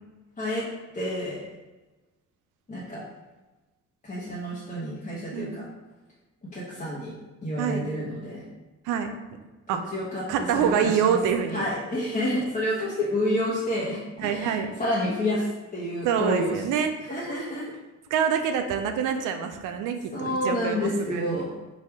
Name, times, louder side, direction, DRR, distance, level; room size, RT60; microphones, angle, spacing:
voice 1, 0.9-1.5 2.7-3.1 4.0-5.7 6.5-7.1 7.4-8.5 9.9-10.2 10.5-10.7 11.0-11.2 11.5-14.5 14.8-16.6 17.1-17.7 20.1-21.5, left 1 dB, 25° left, -7 dB, 0.9 m, -29 dB
voice 2, 10.3-11.7 14.2-14.7 16.0-16.9 18.1-21.4, right 7 dB, 85° right, 6 dB, 0.5 m, -26 dB
3.4 x 2.4 x 4.4 m, 1.2 s
cardioid pair, 90°, 30 cm